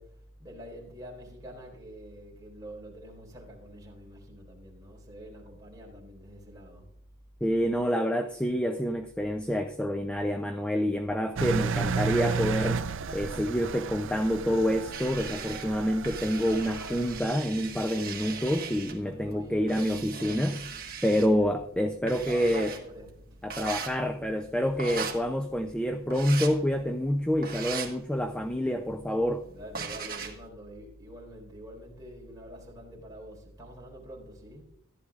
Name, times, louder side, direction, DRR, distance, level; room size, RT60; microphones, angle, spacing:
voice 1, 0.0-6.9 19.0-20.2 21.1-21.6 22.1-23.1 24.7-25.1 29.5-34.6, right 1 dB, 15° right, 3.8 m, -46 dB
voice 2, 7.4-12.8 13.1-20.7 21.0-22.7 23.4-29.5, equal, 5° left, 0.4 m, -27 dB
Engine, 11.4-17.2, right 5 dB, 60° right, 0.5 m, -33 dB
sound 1, 14.9-30.5, right 6 dB, 45° right, 1.5 m, -41 dB
14.5 x 11.5 x 2.4 m
head